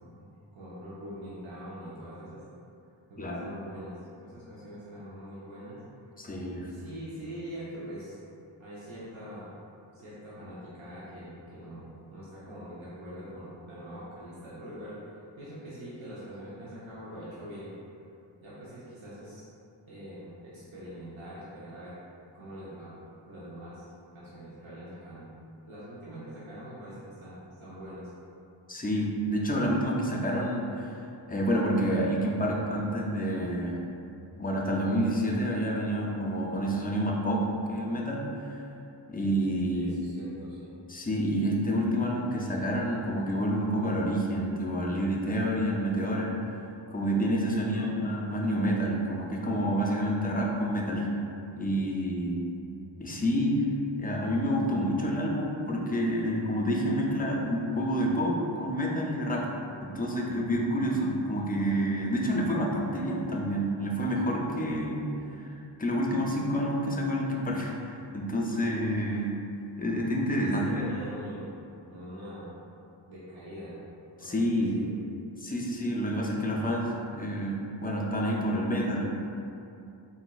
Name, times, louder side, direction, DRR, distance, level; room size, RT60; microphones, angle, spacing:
voice 1, 0.5-2.4 3.1-5.8 6.7-8.2 8.6-9.5 9.9-17.7 18.4-19.5 19.9-22.0 22.3-22.9 23.3-23.9 24.1-25.3 25.6-28.1 39.7-40.7 47.4-48.0 70.4-71.6 71.9-72.5 73.1-73.8 74.2-75.0, equal, 85° right, -10 dB, 0.8 m, -43 dB
voice 2, 6.2-6.7 28.7-30.9 31.3-33.8 34.4-38.5 39.1-40.2 40.9-46.3 46.9-51.1 51.5-52.4 53.0-53.6 54.0-59.5 59.8-65.1 65.8-69.3 69.8-70.8 74.2-74.8 75.4-79.0, equal, 20° left, -2 dB, 0.3 m, -28 dB
3.9 x 2.5 x 2.2 m, 2.6 s
wide cardioid pair, 105°, 46 cm